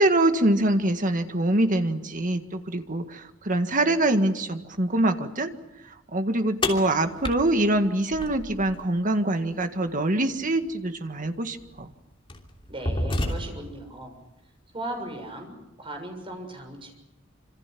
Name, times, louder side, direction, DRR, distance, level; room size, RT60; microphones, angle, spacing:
voice 1, 0.0-5.5 6.1-11.9, right 1 dB, 45° right, 7 dB, 1.8 m, -24 dB
sound 1, 6.6-8.8 10.7-10.8 11.6-11.8 12.3-13.8, left 1 dB, 25° left, 3.1 m, -30 dB
voice 2, 12.7-14.1 14.7-16.9, right 1 dB, 30° right, 4 dB, 6.7 m, -37 dB
27.0 x 26.5 x 6.1 m, 0.91 s
head